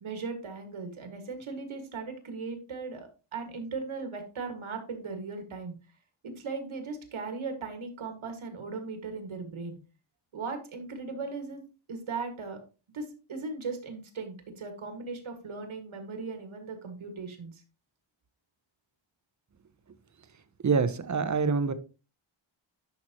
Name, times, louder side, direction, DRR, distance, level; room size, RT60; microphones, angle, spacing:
voice 1, 0.0-5.8 6.2-9.8 10.3-11.6 11.9-12.6 12.9-17.6, right 4 dB, 75° right, 2.0 m, -38 dB
voice 2, 20.6-21.7, right 5 dB, 35° right, 0.8 m, -25 dB
10.5 x 5.8 x 3.0 m
wide cardioid pair, 150°, 49 cm